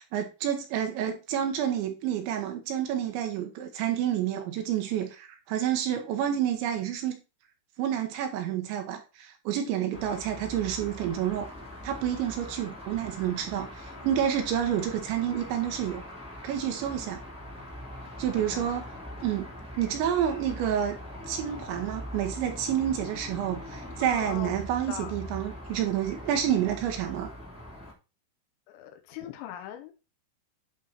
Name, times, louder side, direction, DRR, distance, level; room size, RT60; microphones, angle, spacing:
voice 1, 0.0-7.2 7.8-11.5 11.8-16.0 16.4-17.2 18.2-18.9 19.2-19.5 19.8-21.0 21.3-27.3, right 10 dB, 75° right, 3.1 m, -29 dB
sound 1, 9.9-27.9, left 1 dB, 5° right, 1.0 m, -42 dB
voice 2, 18.3-18.7 24.0-25.1 28.7-29.9, left 10 dB, 75° left, 3.1 m, -40 dB
11.0 x 3.8 x 4.3 m
omnidirectional pair, 5.7 m